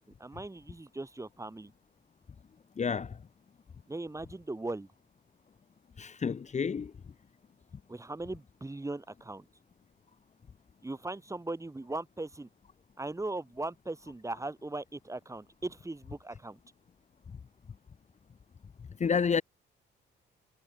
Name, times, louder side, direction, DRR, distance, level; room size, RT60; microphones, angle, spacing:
voice 1, 0.2-1.7 3.9-4.9 7.9-9.5 10.8-12.5 13.0-16.6, right 2 dB, 15° right, 5.3 m, -39 dB
voice 2, 2.8-3.2 6.0-6.9 19.0-19.4, left 6 dB, 35° left, 1.3 m, -29 dB
cardioid pair, 90°, 20 cm